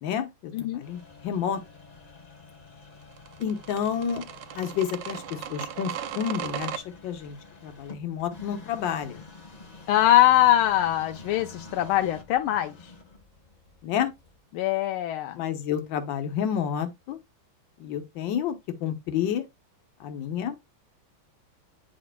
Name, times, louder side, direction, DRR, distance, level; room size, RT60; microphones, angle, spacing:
voice 1, 0.0-1.6 3.4-7.4 7.6-9.3 13.8-14.1 15.4-17.2 17.8-19.5 20.0-20.6, left 8 dB, 65° left, 1.7 m, -30 dB
sound 1, 0.8-14.4, left 3 dB, 30° left, 0.7 m, -48 dB
sound 2, 3.2-6.8, right 10 dB, 70° right, 1.2 m, -36 dB
voice 2, 9.9-12.7 14.5-15.4, left 13 dB, 85° left, 1.4 m, -22 dB
9.3 x 5.1 x 2.2 m
omnidirectional pair, 2.3 m